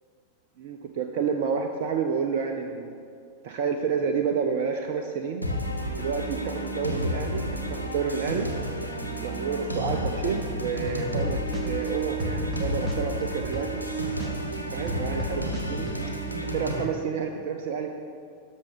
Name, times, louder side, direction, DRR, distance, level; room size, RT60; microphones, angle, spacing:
voice 1, 0.6-2.9 3.4-5.4 6.0-8.5 9.2-13.8 14.7-15.9 16.5-17.9, right 6 dB, 50° right, 4 dB, 0.6 m, -29 dB
sound 1, 5.4-16.8, right 1 dB, 90° right, 1.0 m, -31 dB
sound 2, 10.9-11.2 11.5-13.9 14.2-16.0, right 2 dB, 15° right, 1.3 m, -38 dB
12.0 x 6.3 x 5.3 m, 2.3 s
figure-of-eight pair, 90°, 0 cm